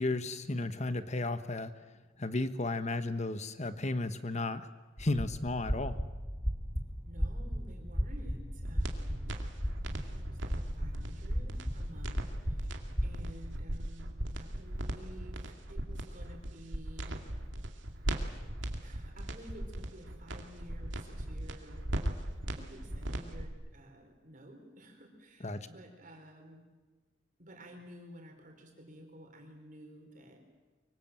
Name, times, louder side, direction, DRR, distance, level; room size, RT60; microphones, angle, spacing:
voice 1, 0.0-1.7 2.2-4.7 5.0-6.0 25.4-25.7, left 2 dB, 35° left, 10 dB, 1.3 m, -33 dB
sound 1, 5.0-13.1, equal, 5° left, 2.0 m, -36 dB
voice 2, 7.0-9.4 9.8-14.1 14.4-17.2 18.8-21.8 22.5-26.6 27.4-30.4, equal, 40° right, 3 dB, 4.8 m, -53 dB
sound 2, 8.6-23.5, right 1 dB, 70° right, 2.4 m, -37 dB
24.5 x 24.0 x 7.6 m, 1.3 s
head